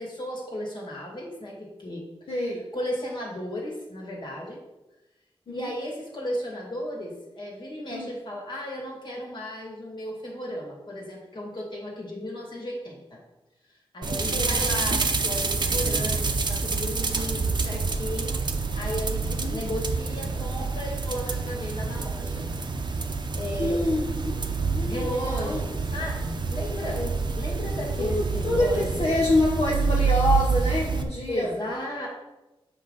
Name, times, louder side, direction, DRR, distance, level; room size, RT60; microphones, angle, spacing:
voice 1, 0.0-2.4 2.7-4.6 5.5-13.2 13.9-18.4 18.7-22.5 23.3-23.8 24.8-27.0 27.4-29.1 31.3-32.1, left 1 dB, 50° left, -2 dB, 2.4 m, -34 dB
voice 2, 2.3-2.6 5.5-5.7 7.9-8.1 14.3-14.5 19.4-19.6 23.6-25.6 26.9-27.1 28.0-31.5, left 2 dB, 75° left, -3 dB, 1.1 m, -27 dB
sound 1, 14.0-31.0, right 4 dB, 50° right, 0.7 m, -27 dB
7.7 x 5.9 x 4.0 m, 1.0 s
wide cardioid pair, 110°, 10 cm